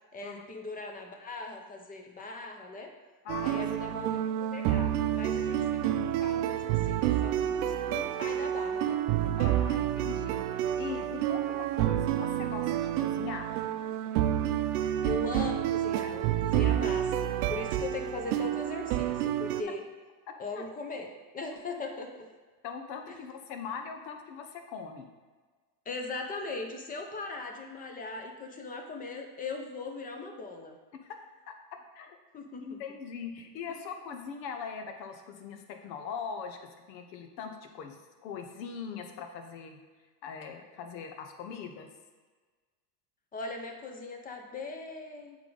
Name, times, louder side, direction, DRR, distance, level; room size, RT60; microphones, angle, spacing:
voice 1, 0.1-2.9 3.4-9.3 15.0-19.8 20.4-21.1 21.3-22.3 25.9-30.8 32.3-32.8 43.3-45.4, left 3 dB, 20° left, 4 dB, 0.6 m, -39 dB
voice 2, 3.2-3.9 7.4-7.6 9.4-13.6 20.5-20.6 22.6-25.1 31.1-32.2 32.6-36.6 36.9-39.8 40.2-41.9, left 6 dB, 90° left, 5 dB, 1.0 m, -41 dB
sound 1, 3.3-19.6, right 11 dB, 65° right, 0.6 m, -29 dB
8.3 x 3.6 x 3.9 m, 1.4 s
supercardioid pair, 135°, 49 cm